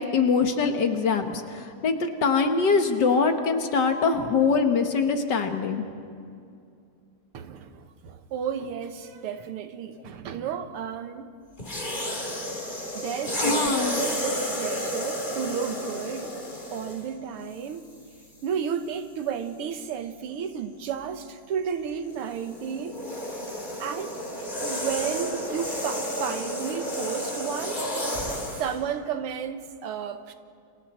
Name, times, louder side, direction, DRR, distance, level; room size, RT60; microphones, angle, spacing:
voice 1, 0.0-5.8 13.4-14.1, left 5 dB, 55° left, 6 dB, 1.8 m, -23 dB
voice 2, 7.3-11.3 12.9-16.3 16.7-17.9 18.4-23.4 23.8-24.2 24.6-27.8 28.6-30.3, right 7 dB, 85° right, 9 dB, 2.0 m, -32 dB
sound 1, 11.6-17.1 17.9-18.1 22.1-28.8, equal, 20° left, 2.9 m, -31 dB
29.0 x 26.5 x 4.3 m, 2.4 s
omnidirectional pair, 2.4 m